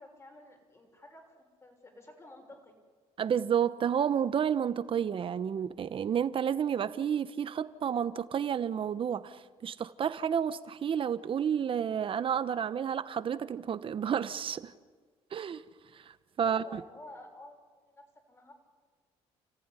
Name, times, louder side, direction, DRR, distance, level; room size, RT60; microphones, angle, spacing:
voice 1, 0.0-1.3 1.6-2.7 16.4-18.5, left 1 dB, 25° left, 3 dB, 6.4 m, -51 dB
voice 2, 3.2-14.7 15.3-15.6 15.9-16.0 16.4-16.8, right 8 dB, 50° right, 13 dB, 1.1 m, -30 dB
29.5 x 15.0 x 9.9 m, 1.5 s
cardioid pair, 95°, 12 cm